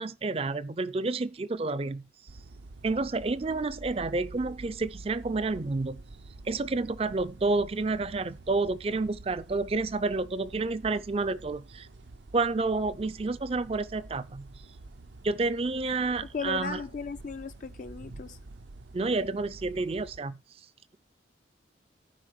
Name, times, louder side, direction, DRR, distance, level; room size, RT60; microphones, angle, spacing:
voice 1, 0.0-2.0 2.8-6.0 6.4-11.9 12.3-14.5 15.2-16.8 18.9-20.4, right 3 dB, 30° right, 0.4 m, -29 dB
sound 1, 2.3-20.2, right 2 dB, 80° right, 0.7 m, -48 dB
voice 2, 16.3-18.4, left 5 dB, 45° left, 0.4 m, -36 dB
15.5 x 5.2 x 3.2 m
head